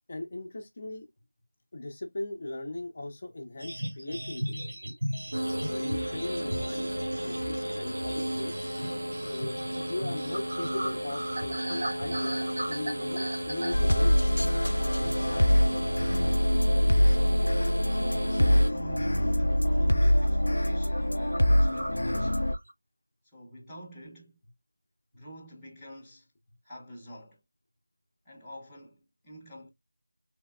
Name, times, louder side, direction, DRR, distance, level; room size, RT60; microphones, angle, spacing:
voice 1, 0.1-1.1 1.7-4.6 5.7-6.9 7.2-8.5 9.2-14.3, left 1 dB, 35° left, 0.7 m, -38 dB
sound 1, 3.6-15.3 15.6-15.9 16.3-17.8 18.1-18.9 19.4-19.7 19.9-20.3 20.6-20.7 21.0-21.1 21.3-22.7, right 1 dB, 45° right, 1.4 m, -38 dB
sound 2, 5.3-18.7, right 1 dB, 85° right, 1.2 m, -34 dB
sound 3, 13.7-22.5, equal, 90° left, 0.4 m, -24 dB
voice 2, 14.9-15.9 16.4-22.5 23.3-24.4 25.1-26.3 26.6-27.4 28.2-29.7, right 1 dB, ahead, 0.9 m, -48 dB
3.4 x 3.1 x 2.3 m
figure-of-eight pair, 175°, 0 cm